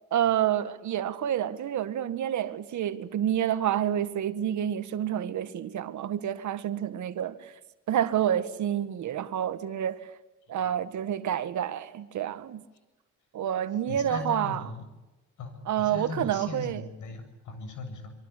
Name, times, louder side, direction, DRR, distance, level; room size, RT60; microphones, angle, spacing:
voice 1, 0.1-7.5 7.9-10.1 10.5-12.6 13.3-14.6 15.7-16.9, right 10 dB, 70° right, 1.9 m, -28 dB
voice 2, 13.9-14.9 15.4-18.1, left 3 dB, 75° left, 7.6 m, -38 dB
26.5 x 23.5 x 8.4 m
cardioid pair, 90°, 30 cm